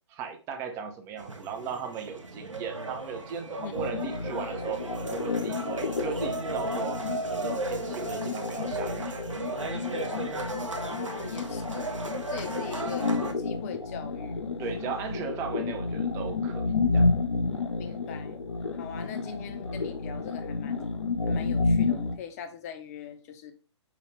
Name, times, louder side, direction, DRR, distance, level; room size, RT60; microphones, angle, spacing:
voice 1, 0.1-7.0 7.3-10.0 11.0-11.1 14.6-17.1 17.8-18.0, right 6 dB, 15° right, 0.5 m, -37 dB
sound 1, 1.2-13.3, right 2 dB, 90° right, 0.7 m, -36 dB
voice 2, 3.6-3.9 10.7-11.9 12.3-14.5 17.8-18.4 18.7-20.9 21.3-23.5, left 7 dB, 30° left, 0.7 m, -41 dB
sound 2, 3.7-22.2, left 3 dB, 80° left, 0.6 m, -30 dB
4.8 x 2.4 x 3.1 m
figure-of-eight pair, 130°, 16 cm